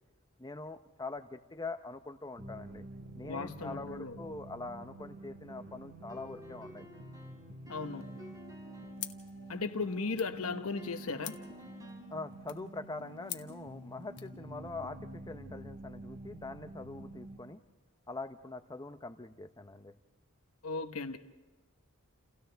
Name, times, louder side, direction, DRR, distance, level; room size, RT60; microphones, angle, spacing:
voice 1, 0.4-2.8 3.1-6.8 12.1-17.6 18.1-19.9, left 3 dB, 20° left, 9 dB, 0.7 m, -43 dB
sound 1, 2.4-17.4, right 1 dB, 50° right, 3.9 m, -48 dB
voice 2, 3.2-4.2 7.7-8.0 9.5-11.4 20.6-21.2, left 4 dB, 80° left, 8 dB, 1.1 m, -36 dB
sound 2, 6.1-9.1 10.8-12.2, left 1 dB, 15° right, 3.7 m, -53 dB
sound 3, 9.0-14.4, left 12 dB, 55° left, 1.1 m, -49 dB
29.5 x 29.5 x 3.5 m, 1.2 s
head